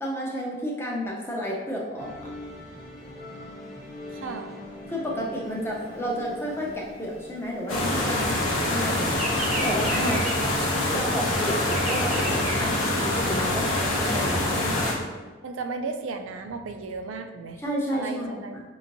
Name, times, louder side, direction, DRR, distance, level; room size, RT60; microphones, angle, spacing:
voice 1, 0.0-2.3 4.9-9.1 9.6-10.5 10.9-15.0 17.6-18.6, equal, 10° left, -3 dB, 0.6 m, -31 dB
sound 1, 2.0-15.1, left 1 dB, 40° left, 1.0 m, -44 dB
voice 2, 4.1-4.5 10.0-10.2 15.4-17.6 17.9-18.6, right 4 dB, 80° right, 6 dB, 0.4 m, -34 dB
Bird vocalization bird call bird song, 5.5-8.4 8.7-13.4, right 1 dB, 30° right, 0.7 m, -34 dB
sound 2, 7.7-14.9, left 1 dB, 85° left, 0.8 m, -25 dB
5.3 x 2.9 x 2.6 m, 1.3 s
head